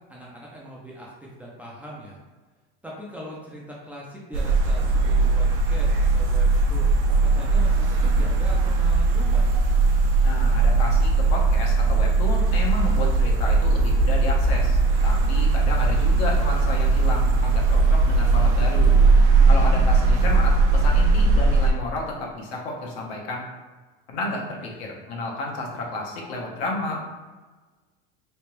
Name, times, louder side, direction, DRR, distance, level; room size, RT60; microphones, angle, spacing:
voice 1, 0.1-2.2 2.8-6.9 7.2-9.5 19.0-19.6 24.2-24.8, equal, 5° right, -5 dB, 0.3 m, -41 dB
sound 1, 4.3-21.7, right 3 dB, 65° right, 0.7 m, -19 dB
voice 2, 10.2-19.0 19.5-23.5 24.1-27.0, left 2 dB, 80° left, -1 dB, 1.0 m, -31 dB
3.3 x 2.9 x 3.0 m, 1.3 s
supercardioid pair, 150°, 30 cm